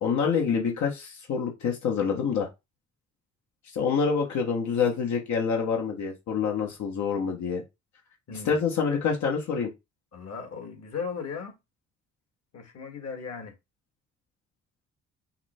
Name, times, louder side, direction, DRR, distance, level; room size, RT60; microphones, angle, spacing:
voice 1, 0.0-2.5 3.7-7.6 8.3-9.7, left 6 dB, 70° left, 1.3 m, -26 dB
voice 2, 10.1-11.5 12.5-13.5, left 5 dB, 55° left, 1.7 m, -37 dB
5.8 x 2.2 x 4.2 m
cardioid pair, 90°, 30 cm